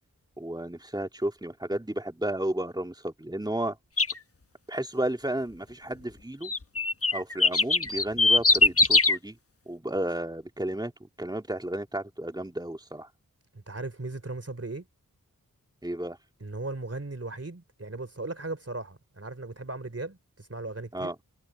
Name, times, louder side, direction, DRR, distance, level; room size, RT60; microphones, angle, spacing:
voice 1, 0.4-3.8 4.7-6.5 7.1-9.4 9.7-10.9 11.2-13.1 15.8-16.2 20.9-21.1, right 1 dB, 10° right, 2.9 m, -32 dB
sound 1, 4.0-4.2 6.4-9.2, left 3 dB, 40° left, 1.3 m, -21 dB
voice 2, 13.5-14.8 16.4-21.1, right 2 dB, 40° right, 3.2 m, -37 dB
wide cardioid pair, 55°, 36 cm